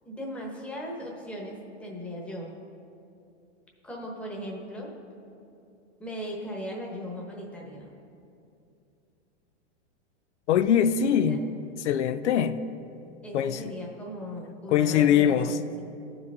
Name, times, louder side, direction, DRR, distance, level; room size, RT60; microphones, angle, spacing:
voice 1, 0.0-2.5 3.8-4.9 6.0-7.9 11.2-11.4 13.2-15.8, equal, 5° left, -2 dB, 1.1 m, -38 dB
voice 2, 10.5-11.4 11.8-12.6 13.3-13.7 14.7-15.6, left 9 dB, 90° left, 11 dB, 0.5 m, -22 dB
15.0 x 5.0 x 3.6 m, 2.6 s
supercardioid pair, 145°, 34 cm